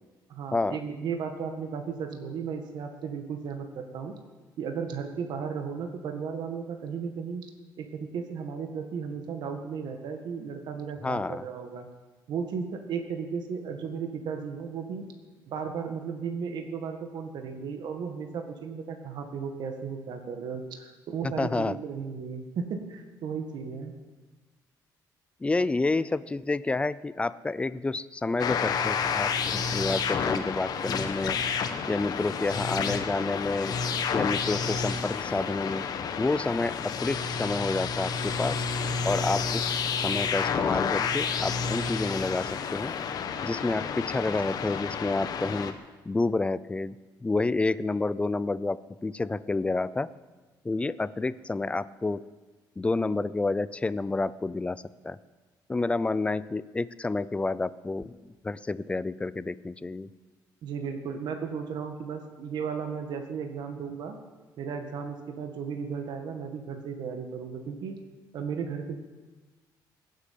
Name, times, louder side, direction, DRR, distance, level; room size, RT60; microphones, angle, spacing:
voice 1, 0.3-4.1 4.6-7.5 7.8-11.9 12.3-15.1 15.5-23.9 60.6-64.2 64.6-68.0 68.3-69.0, right 6 dB, 65° right, 5 dB, 1.8 m, -35 dB
voice 2, 11.0-11.4 21.2-21.8 25.4-31.4 31.9-33.7 34.1-35.9 36.2-38.6 39.0-39.7 40.0-42.9 43.4-45.7 46.1-47.0 47.2-48.8 49.0-50.1 50.6-52.2 52.8-55.2 55.7-58.1 58.4-60.1, left 3 dB, 15° left, 17 dB, 0.5 m, -29 dB
sound 1, 28.4-45.7, left 6 dB, 55° left, 1.4 m, -30 dB
20.0 x 8.3 x 8.6 m, 1.3 s
cardioid pair, 115°, 8 cm